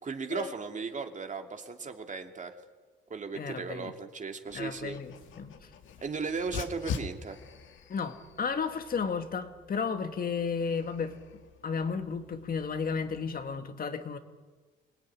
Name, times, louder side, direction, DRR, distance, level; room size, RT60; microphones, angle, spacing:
voice 1, 0.0-2.6 3.1-5.0 6.0-7.4, right 5 dB, 40° right, 5 dB, 2.6 m, -36 dB
voice 2, 3.3-3.9 4.5-5.7 7.9-11.2 11.6-14.2, left 5 dB, 45° left, 7 dB, 2.1 m, -33 dB
Dog, 4.5-13.6, left 6 dB, 75° left, 2.2 m, -44 dB
26.0 x 18.5 x 10.0 m, 1.4 s
cardioid pair, 90°, 20 cm